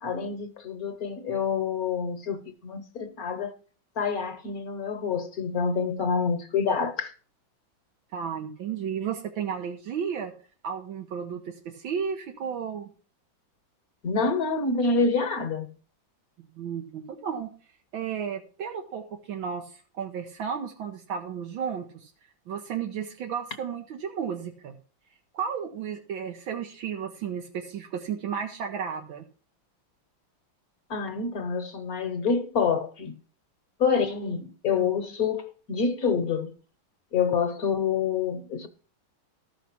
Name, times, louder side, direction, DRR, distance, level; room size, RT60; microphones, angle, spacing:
voice 1, 0.0-3.5 4.0-7.1 14.0-15.7 30.9-33.1 33.8-36.5 37.1-38.7, left 5 dB, 55° left, 1.3 m, -27 dB
voice 2, 8.1-10.3 10.6-12.9 16.6-17.5 17.9-22.1 22.5-24.7 25.3-29.2 34.7-34.9, right 7 dB, 80° right, 1.8 m, -33 dB
13.5 x 5.8 x 6.0 m
omnidirectional pair, 2.1 m